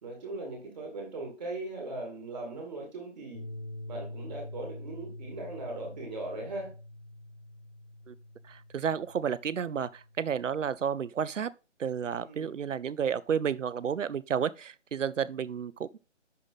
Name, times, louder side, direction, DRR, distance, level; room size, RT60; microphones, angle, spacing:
voice 1, 0.0-3.4 3.9-6.7 12.2-12.5, right 2 dB, 35° right, 2.5 m, -39 dB
sound 1, 3.3-10.4, left 1 dB, 35° left, 1.4 m, -45 dB
voice 2, 8.5-11.5 11.8-16.0, right 7 dB, 80° right, 0.7 m, -31 dB
10.5 x 3.8 x 4.0 m
hypercardioid pair, 170°, 37 cm